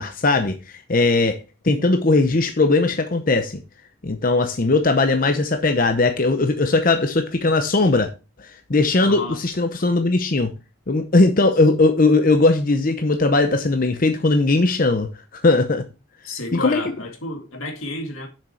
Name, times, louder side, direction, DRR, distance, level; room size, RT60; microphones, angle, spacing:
voice 1, 0.0-1.4 1.6-3.6 4.0-8.1 8.4-10.5 10.9-15.9 16.5-16.8, left 3 dB, 40° left, 0.7 m, -19 dB
voice 2, 9.0-9.4 16.2-18.3, left 2 dB, 85° left, 2.1 m, -31 dB
7.2 x 6.3 x 4.4 m
head